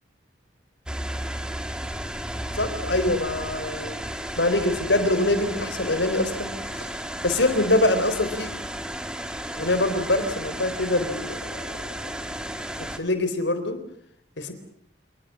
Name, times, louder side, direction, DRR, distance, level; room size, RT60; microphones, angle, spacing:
sound 1, 0.9-13.0, right 1 dB, 5° right, 1.9 m, -33 dB
voice 1, 2.5-4.0 4.4-6.5 6.8-6.9 7.2-8.5 9.5-11.4 12.8-13.8 14.4-14.5, left 2 dB, 70° left, 10 dB, 3.8 m, -24 dB
28.0 x 21.0 x 7.3 m, 0.69 s
head